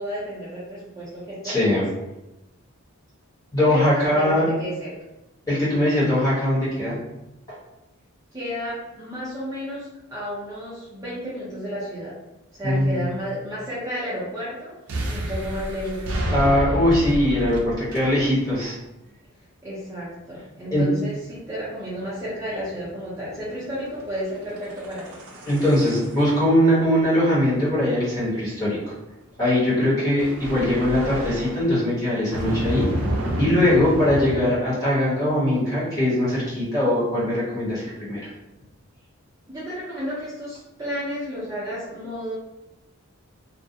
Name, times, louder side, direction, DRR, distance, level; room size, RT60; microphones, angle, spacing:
voice 1, 0.0-1.8 3.7-4.9 8.3-12.2 12.5-14.7 15.1-16.6 19.6-25.2 29.9-30.1 39.5-42.3, equal, 15° right, -10 dB, 0.5 m, -32 dB
voice 2, 1.4-1.9 3.5-4.5 5.5-7.0 12.6-13.1 16.3-18.7 20.7-20.8 25.4-28.8 29.4-32.9 33.4-38.3, left 1 dB, 15° left, -10 dB, 1.0 m, -21 dB
sound 1, 14.9-18.5 20.4-28.8 30.2-31.8 32.3-34.4, right 1 dB, 75° right, 0.4 m, -30 dB
2.4 x 2.0 x 2.6 m, 0.94 s
head